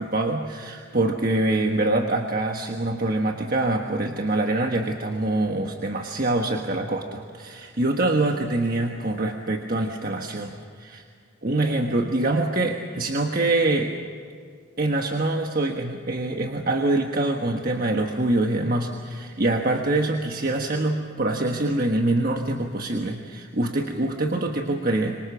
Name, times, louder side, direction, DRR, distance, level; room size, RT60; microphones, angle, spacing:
voice 1, 0.0-11.0 11.4-13.9 14.8-25.2, right 2 dB, 45° right, 2 dB, 1.4 m, -25 dB
27.0 x 23.5 x 6.2 m, 2.2 s
head